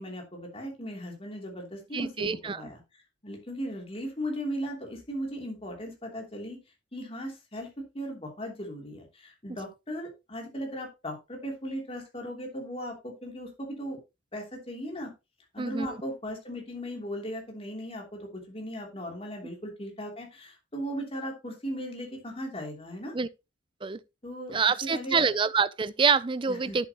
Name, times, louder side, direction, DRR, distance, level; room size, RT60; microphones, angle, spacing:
voice 1, 0.0-2.8 3.2-6.6 6.9-7.7 7.9-14.0 14.3-15.1 15.5-23.1 24.2-24.6 24.9-25.3 26.5-26.8, equal, 30° left, 3.1 m, -37 dB
voice 2, 1.9-2.7 15.6-15.9 23.1-23.3 23.8-24.0 24.5-26.9, right 5 dB, 25° right, 0.4 m, -26 dB
10.5 x 7.3 x 3.0 m
head